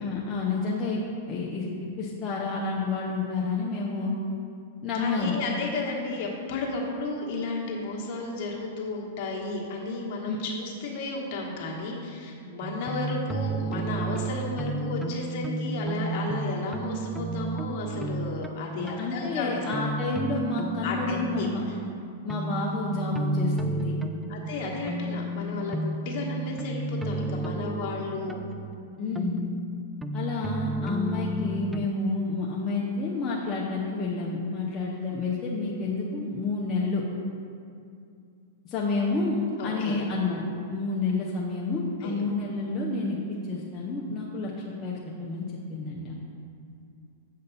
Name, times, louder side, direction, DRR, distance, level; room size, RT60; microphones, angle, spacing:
voice 1, 0.0-1.7 2.0-4.1 4.8-5.4 10.3-10.4 18.8-21.6 22.2-23.9 29.0-29.4 30.1-37.0 38.6-40.4 40.7-43.2 43.5-46.1, left 3 dB, 25° left, -5 dB, 0.8 m, -29 dB
voice 2, 4.9-19.6 20.8-21.8 24.3-28.5 39.6-40.0 42.0-42.3, left 3 dB, 50° left, -2 dB, 1.4 m, -33 dB
sound 1, 12.6-31.9, right 2 dB, 5° right, 0.3 m, -32 dB
8.0 x 5.2 x 4.1 m, 2.5 s
hypercardioid pair, 125°, 0 cm